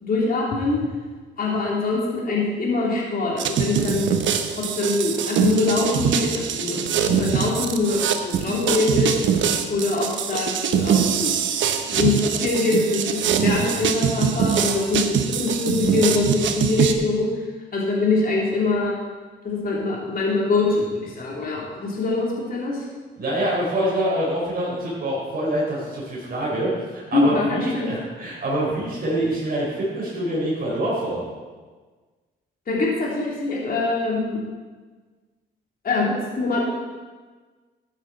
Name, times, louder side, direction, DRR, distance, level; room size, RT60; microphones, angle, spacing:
voice 1, 0.0-0.8 1.4-4.1 4.6-9.1 9.7-11.3 11.9-17.3 17.7-18.9 19.4-22.8 27.1-27.9 32.7-34.4 35.8-36.6, left 3 dB, 45° left, -4 dB, 3.1 m, -23 dB
sound 1, 3.4-16.9, right 8 dB, 70° right, 1.0 m, -23 dB
voice 2, 23.2-31.2, right 1 dB, 50° right, -6 dB, 4.3 m, -25 dB
13.5 x 9.0 x 4.1 m, 1.4 s
cardioid pair, 90°, 20 cm